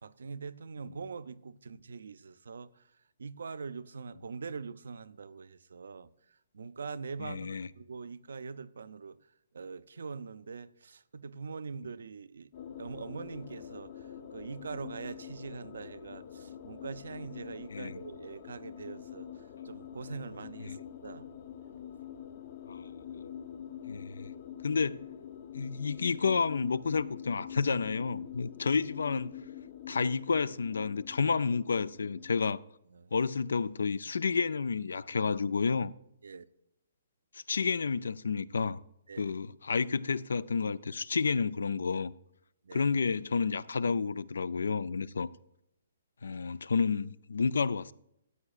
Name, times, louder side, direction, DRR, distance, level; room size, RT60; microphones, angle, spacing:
voice 1, 0.0-2.9 3.2-6.1 6.5-9.2 9.5-12.5 12.8-19.3 19.6-20.8 21.0-21.3 32.9-33.1 36.2-36.5 39.1-39.4 42.6-42.9, right 5 dB, 75° right, 0.5 m, -43 dB
voice 2, 7.2-7.7 17.7-18.0 20.7-20.8 22.7-22.9 23.9-24.3 24.6-25.0 25.5-29.3 29.9-32.6 33.1-35.9 37.3-38.8 39.2-42.1 42.7-45.3 46.2-47.9, left 5 dB, 75° left, 0.4 m, -30 dB
sound 1, 12.5-32.5, left 9 dB, 55° left, 0.9 m, -45 dB
13.5 x 8.5 x 2.4 m
hypercardioid pair, 135°, 0 cm